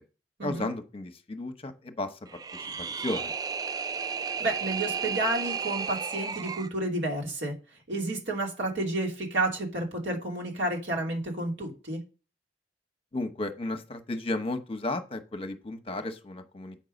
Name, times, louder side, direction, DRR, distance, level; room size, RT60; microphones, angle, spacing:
voice 1, 0.4-2.2 3.0-3.3 13.1-16.8, left 2 dB, 35° left, 8 dB, 0.9 m, -33 dB
sound 1, 2.3-6.7, right 6 dB, 20° right, 0.3 m, -33 dB
voice 2, 4.4-7.5 7.9-12.0, right 2 dB, 90° right, 0 dB, 2.7 m, -30 dB
7.5 x 5.4 x 5.1 m, 0.34 s
head